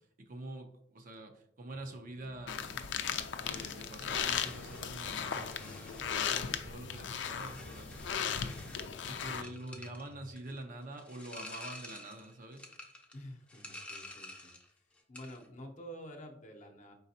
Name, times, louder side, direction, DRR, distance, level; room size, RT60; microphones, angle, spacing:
voice 1, 0.0-2.6 3.1-8.7 9.1-12.6, right 1 dB, 50° right, 5 dB, 0.6 m, -46 dB
sound 1, 1.7-10.3, left 1 dB, 85° right, 1.1 m, -56 dB
sound 2, 2.5-9.4, left 7 dB, 80° left, 0.4 m, -37 dB
sound 3, 4.0-14.7 15.0-15.5, left 1 dB, 5° left, 0.6 m, -51 dB
voice 2, 13.1-14.7 15.1-16.9, equal, 45° left, 4 dB, 0.7 m, -49 dB
5.0 x 3.9 x 2.7 m, 0.76 s
head